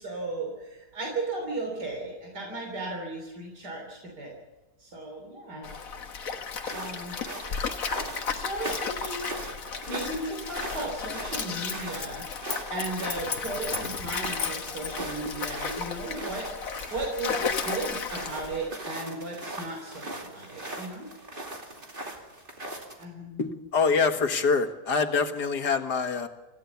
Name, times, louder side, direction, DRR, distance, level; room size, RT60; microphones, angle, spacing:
voice 1, 0.0-4.3 4.8-5.8 6.7-7.2 8.3-9.4 9.9-16.5 16.9-21.1 23.0-23.5, right 2 dB, 85° right, 1 dB, 4.0 m, -36 dB
Stream, 5.6-18.7, left 5 dB, 55° left, 1.7 m, -34 dB
sound 1, 6.5-23.0, right 1 dB, 30° right, 2.8 m, -40 dB
voice 2, 23.4-26.3, left 5 dB, 85° left, 6 dB, 2.2 m, -25 dB
26.5 x 15.5 x 7.1 m, 1.1 s
omnidirectional pair, 1.7 m